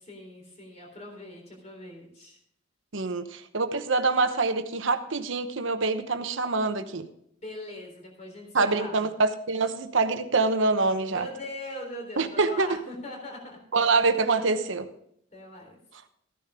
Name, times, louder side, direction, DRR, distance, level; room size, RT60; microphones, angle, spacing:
voice 1, 0.0-2.4 7.4-9.1 11.1-13.6 15.3-15.8, left 1 dB, 35° left, 1 dB, 3.7 m, -41 dB
voice 2, 2.9-7.1 8.5-11.3 12.2-12.8 13.7-14.9, right 3 dB, 75° right, 9 dB, 1.0 m, -25 dB
14.5 x 10.0 x 3.7 m, 0.71 s
head